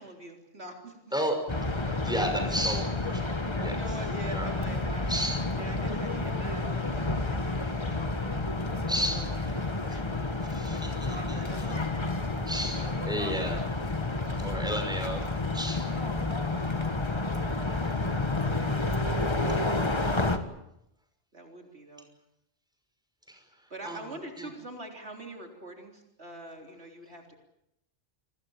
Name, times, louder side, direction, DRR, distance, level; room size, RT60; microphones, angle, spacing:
voice 1, 0.0-1.0 1.8-1.9 3.6-5.1 5.6-9.4 9.6-10.6 11.1-11.7 12.6-13.7 15.9-16.3 17.0-17.9 18.4-20.6 21.3-22.1 23.7-27.4, right 1 dB, 70° right, 2 dB, 4.0 m, -45 dB
voice 2, 1.1-1.7 2.0-3.8 4.3-4.5 5.1-5.4 8.9-9.3 10.5-11.7 12.5-13.6 14.4-15.3 15.5-15.9 23.3-23.4 23.8-24.0 24.4-24.5, equal, 5° right, 4 dB, 5.9 m, -33 dB
sound 1, 1.5-20.4, left 2 dB, 25° left, 1.7 m, -30 dB
29.0 x 21.0 x 7.3 m, 0.82 s
omnidirectional pair, 1.1 m